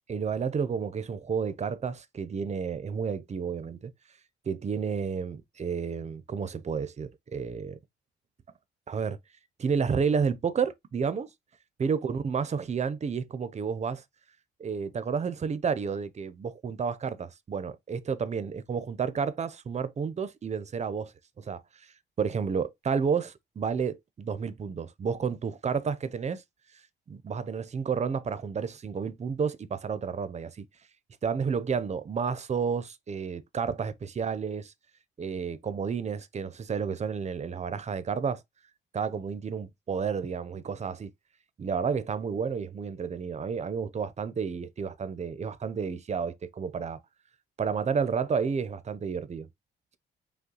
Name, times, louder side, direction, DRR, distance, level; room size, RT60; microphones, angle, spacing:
voice 1, 0.1-3.9 4.5-7.8 8.9-9.2 9.6-11.3 11.8-14.0 14.6-17.1 17.5-21.1 21.4-21.6 22.2-26.4 27.1-30.7 31.2-34.7 35.2-38.4 38.9-41.1 41.6-47.0 47.6-49.5, right 6 dB, 35° right, 0.7 m, -31 dB
5.5 x 2.3 x 3.8 m
cardioid pair, 90°, 20 cm